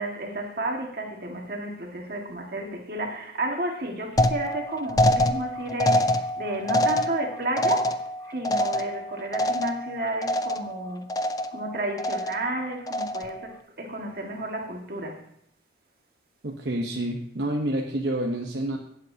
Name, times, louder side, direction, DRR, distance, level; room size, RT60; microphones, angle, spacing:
voice 1, 0.0-8.0 8.3-11.1 11.5-15.2, right 1 dB, 55° right, 2 dB, 1.7 m, -32 dB
sound 1, 4.2-9.9 10.2-10.8 11.1-11.7 12.0-12.5 12.9-13.4, left 1 dB, 20° left, 0.4 m, -25 dB
voice 2, 16.4-18.8, right 1 dB, 75° right, 1 dB, 0.9 m, -28 dB
16.5 x 8.1 x 2.8 m, 0.70 s
head